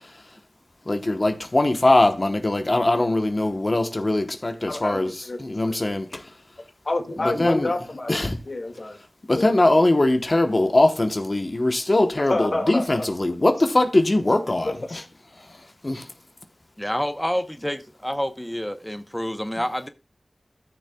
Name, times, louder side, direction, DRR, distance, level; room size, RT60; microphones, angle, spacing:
voice 1, 0.9-5.1 5.4-6.0 7.4-7.7 8.1-8.4 9.3-14.7 15.8-16.0, left 2 dB, 45° left, 1.0 m, -21 dB
voice 2, 4.7-5.8 6.9-9.0 9.3-9.6 12.3-13.1 14.6-15.1, left 2 dB, 60° left, 2.0 m, -29 dB
voice 3, 16.8-19.9, equal, 10° left, 0.9 m, -28 dB
14.0 x 6.6 x 2.3 m
wide cardioid pair, 45°, 0 cm